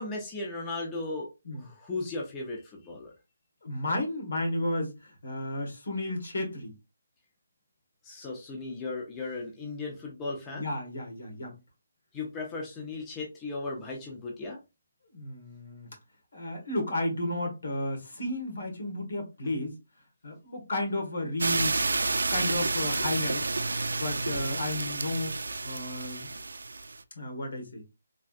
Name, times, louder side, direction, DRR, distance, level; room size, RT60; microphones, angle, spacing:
voice 1, 0.0-1.3 1.6-3.1 8.0-10.6 12.1-14.6, left 3 dB, 10° left, 0.5 m, -36 dB
voice 2, 3.6-6.8 10.5-11.6 15.1-15.9 16.3-19.7 20.2-21.8 22.3-23.5 23.9-25.4 25.6-26.3 27.1-27.8, left 1 dB, 65° left, 1.6 m, -33 dB
sound 1, 21.4-27.0, right 3 dB, 90° right, 0.3 m, -30 dB
3.4 x 2.4 x 2.5 m
hypercardioid pair, 170°, 0 cm